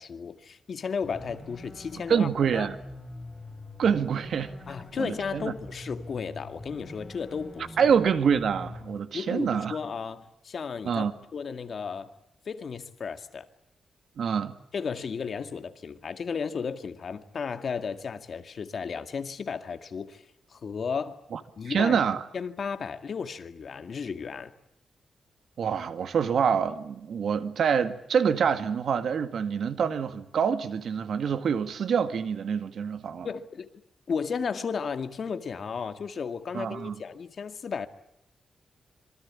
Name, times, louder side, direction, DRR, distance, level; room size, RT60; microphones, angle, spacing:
voice 1, 0.0-2.7 4.7-7.9 9.1-11.1 11.3-12.1 12.5-13.5 14.7-21.2 21.6-22.0 22.3-24.5 33.2-33.7 34.1-37.9, left 6 dB, 50° left, 2.0 m, -34 dB
sound 1, 1.0-9.0, left 1 dB, 5° left, 8.0 m, -44 dB
voice 2, 2.1-2.8 3.8-4.5 5.0-5.5 7.8-9.8 10.9-11.1 14.2-14.6 21.3-21.4 21.7-22.2 25.6-33.3 36.5-37.0, right 7 dB, 65° right, 2.0 m, -26 dB
26.5 x 24.0 x 8.6 m
wide cardioid pair, 140°, 0 cm